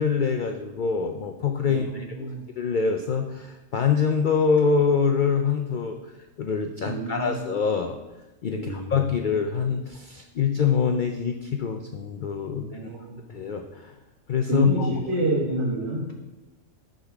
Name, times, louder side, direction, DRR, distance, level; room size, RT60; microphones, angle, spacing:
voice 1, 0.0-6.0 6.4-8.0 8.4-12.9 13.3-14.0 14.3-14.9, left 6 dB, 80° left, 5 dB, 0.4 m, -25 dB
voice 2, 1.6-2.5 6.8-7.3 8.5-8.9 12.5-13.3 14.5-16.0, equal, 50° right, -4 dB, 1.4 m, -28 dB
8.1 x 3.8 x 5.8 m, 1.1 s
omnidirectional pair, 1.4 m